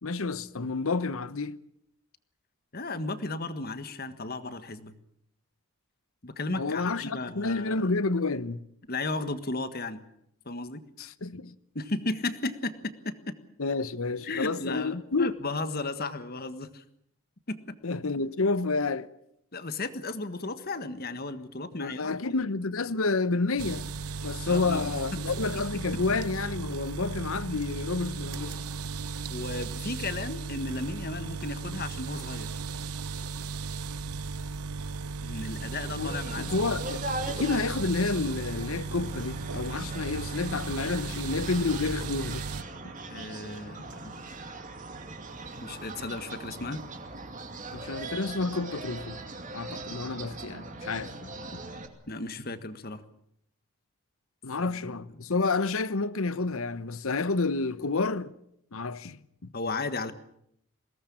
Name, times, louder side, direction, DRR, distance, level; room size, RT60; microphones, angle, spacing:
voice 1, 0.0-1.6 6.6-8.7 11.0-11.5 13.6-15.4 17.8-19.1 21.8-23.9 24.2-28.6 36.0-42.5 47.7-49.2 49.5-51.1 51.5-51.6 54.4-58.3 58.7-59.5, left 3 dB, 65° left, 0.9 m, -30 dB
voice 2, 2.7-4.9 6.2-7.9 8.9-10.0 10.4-10.8 11.7-13.3 14.2-16.8 17.5-17.6 19.5-22.4 22.8-22.9 24.5-25.0 29.3-32.6 35.2-36.7 43.1-44.1 45.6-46.8 52.1-53.0 54.6-54.7 55.2-55.3 59.5-60.1, left 2 dB, 45° left, 1.5 m, -35 dB
sound 1, 23.6-42.6, right 4 dB, 80° right, 0.8 m, -36 dB
sound 2, 35.6-51.9, right 2 dB, 35° right, 2.5 m, -40 dB
22.0 x 18.0 x 8.6 m
head